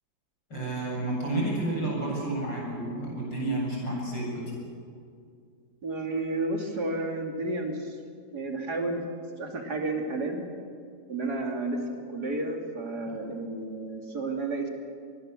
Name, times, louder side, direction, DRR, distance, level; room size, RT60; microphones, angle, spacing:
voice 1, 0.5-4.6, right 2 dB, 85° left, -2 dB, 8.5 m, -30 dB
voice 2, 5.8-8.0 8.3-9.0 9.4-10.4 11.1-11.8 12.1-14.7, right 2 dB, 60° right, 3 dB, 3.1 m, -31 dB
26.0 x 20.0 x 7.6 m, 2.3 s
omnidirectional pair, 1.9 m